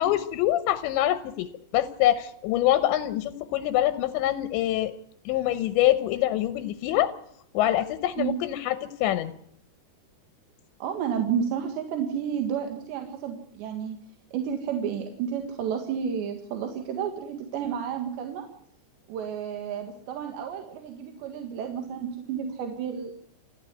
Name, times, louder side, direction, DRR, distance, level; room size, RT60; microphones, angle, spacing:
voice 1, 0.0-4.9 5.3-7.1 7.5-9.3, left 13 dB, 85° left, 11 dB, 3.3 m, -25 dB
voice 2, 10.8-14.0 14.3-18.5 19.1-23.1, right 8 dB, 80° right, 4 dB, 4.0 m, -31 dB
29.0 x 11.0 x 9.7 m, 0.70 s
omnidirectional pair, 5.1 m